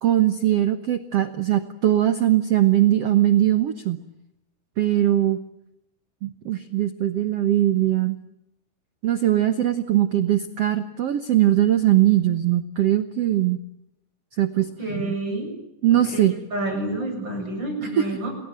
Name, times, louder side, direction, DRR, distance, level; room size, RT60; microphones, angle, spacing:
voice 1, 0.0-4.0 4.8-5.4 6.2-8.2 9.0-13.6 14.4-15.2 15.8-16.4 17.8-18.0, right 12 dB, 85° right, 11 dB, 1.3 m, -21 dB
voice 2, 14.8-15.5 15.9-18.3, right 1 dB, 25° right, 3 dB, 8.3 m, -29 dB
29.0 x 21.0 x 8.9 m, 0.84 s
omnidirectional pair, 4.6 m